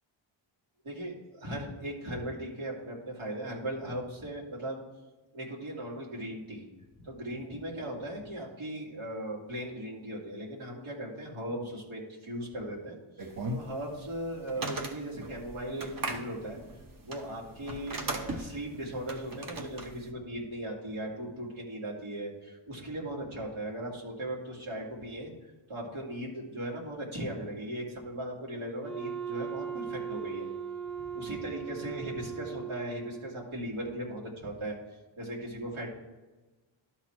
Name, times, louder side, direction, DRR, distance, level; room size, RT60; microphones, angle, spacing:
voice 1, 0.8-4.8 5.3-6.7 7.0-13.0 13.5-16.6 17.0-25.3 25.7-30.5 31.1-34.8 35.2-35.9, right 1 dB, 85° right, -3 dB, 2.7 m, -38 dB
sound 1, 13.2-20.1, right 2 dB, 45° right, 1.0 m, -38 dB
Wind instrument woodwind instrument, 28.8-33.5, right 7 dB, ahead, 0.6 m, -38 dB
12.0 x 4.1 x 4.5 m, 1.2 s
wide cardioid pair, 130°, 47 cm